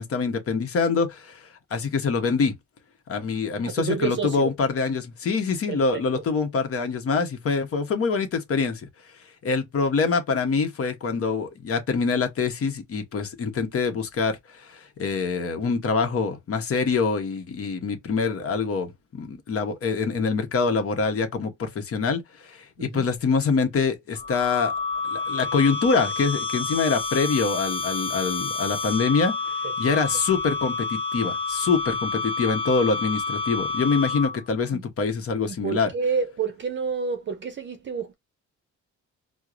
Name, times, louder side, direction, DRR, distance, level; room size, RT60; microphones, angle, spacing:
voice 1, 0.0-2.5 3.1-8.9 9.4-24.7 25.0-35.9, left 4 dB, 50° left, 0.9 m, -25 dB
voice 2, 3.6-4.5 5.7-6.0 22.8-23.1 29.9-30.0 34.7-34.8 35.5-38.1, right 5 dB, 40° right, 0.6 m, -29 dB
sound 1, 24.1-34.5, left 3 dB, 20° left, 0.8 m, -29 dB
4.5 x 2.1 x 2.5 m
cardioid pair, 90°, 30 cm